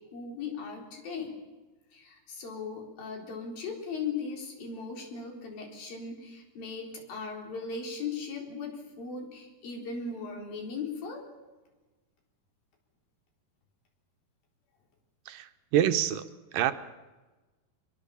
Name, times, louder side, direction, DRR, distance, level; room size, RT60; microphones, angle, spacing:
voice 1, 0.1-1.3 1.9-11.2, left 5 dB, 80° left, 2 dB, 5.8 m, -38 dB
voice 2, 15.3-16.3 16.5-16.7, right 10 dB, 80° right, 10 dB, 2.7 m, -26 dB
24.0 x 22.0 x 7.1 m, 1.2 s
omnidirectional pair, 4.0 m